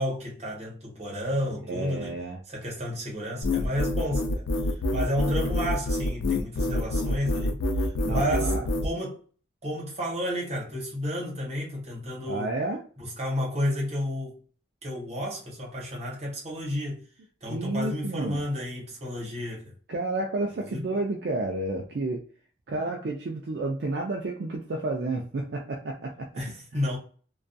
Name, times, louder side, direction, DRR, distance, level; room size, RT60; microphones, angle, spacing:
voice 1, 0.0-2.1 2.5-8.5 8.8-9.2 9.6-12.6 13.0-14.4 14.8-17.0 17.4-19.7 20.6-20.8 26.3-27.0, equal, 35° right, 0.9 m, -31 dB
voice 2, 1.7-2.4 8.0-8.6 12.3-12.8 17.5-18.4 19.9-22.2 22.7-26.5, right 2 dB, 60° right, 0.4 m, -31 dB
sound 1, 3.4-8.9, left 1 dB, 90° left, 0.4 m, -26 dB
2.6 x 2.3 x 2.2 m
head